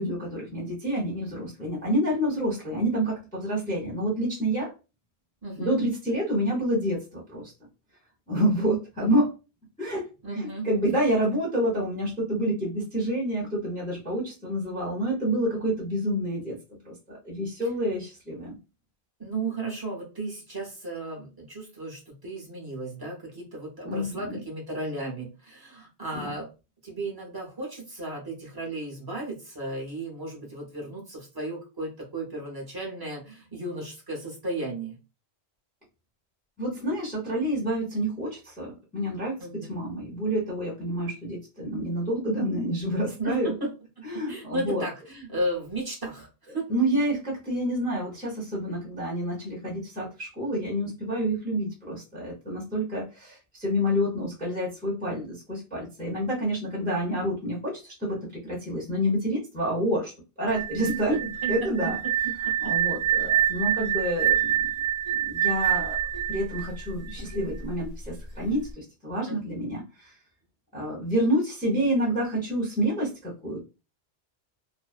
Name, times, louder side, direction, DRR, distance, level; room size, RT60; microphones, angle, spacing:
voice 1, 0.0-4.7 5.6-7.5 8.3-9.3 9.8-10.1 10.4-16.5 16.8-18.6 23.8-24.4 26.1-26.3 36.6-43.5 44.0-44.8 46.7-60.1 60.4-61.2 61.5-62.0 62.6-64.7 65.1-66.0 66.3-70.2 70.7-73.7, equal, 10° left, -4 dB, 0.7 m, -28 dB
voice 2, 5.4-5.8 10.2-10.7 19.2-26.5 26.8-35.0 39.4-39.8 43.2-43.7 44.3-46.3 46.5-46.6 60.8-61.5 61.8-61.9 62.2-62.7 69.2-69.4, right 2 dB, 25° right, -2 dB, 0.8 m, -34 dB
sound 1, 60.5-67.4, right 11 dB, 50° right, 0.5 m, -26 dB
2.5 x 2.1 x 2.4 m, 0.30 s
omnidirectional pair, 1.1 m